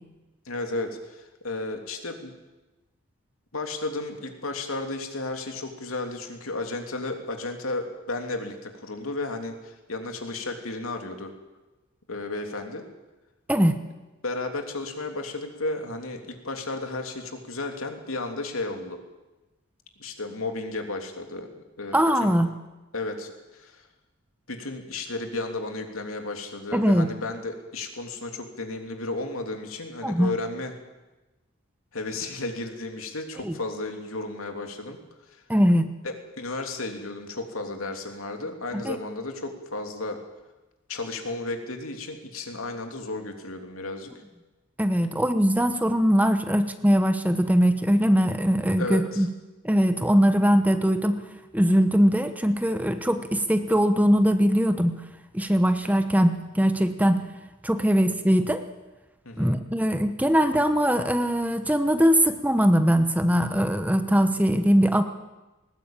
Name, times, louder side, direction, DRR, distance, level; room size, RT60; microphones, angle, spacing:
voice 1, 0.4-2.3 3.5-11.3 12.1-12.8 14.2-19.0 20.0-22.4 22.9-23.9 24.5-30.7 31.9-35.0 35.3-35.4 36.0-40.2 40.9-44.1 48.8-49.3 59.2-59.5, left 2 dB, 90° left, 4 dB, 3.1 m, -33 dB
voice 2, 21.9-22.5 26.7-27.1 30.0-30.3 33.4-33.5 35.5-35.9 38.7-39.0 44.8-49.3 49.6-51.2 51.5-55.0 55.3-57.2 57.6-58.7 59.4-65.0, equal, 5° right, 9 dB, 1.0 m, -21 dB
19.5 x 19.5 x 9.0 m, 1.1 s
head